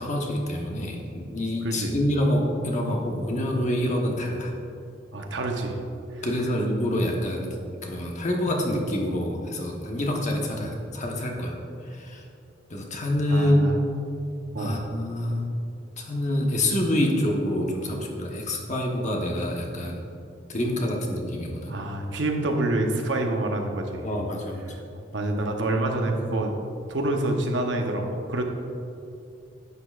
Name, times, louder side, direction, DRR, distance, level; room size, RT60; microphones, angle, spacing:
voice 1, 0.0-4.5 6.2-7.5 7.8-11.6 11.8-12.2 12.7-13.8 14.6-15.5 16.0-20.0 20.5-21.8 24.0-24.7, left 1 dB, 40° left, 0 dB, 1.1 m, -26 dB
voice 2, 5.1-5.8 6.1-6.2 13.3-13.8 14.5-14.8 21.7-24.0 25.1-28.4, right 2 dB, 70° right, 2 dB, 0.9 m, -27 dB
11.0 x 8.5 x 2.5 m, 2.6 s
head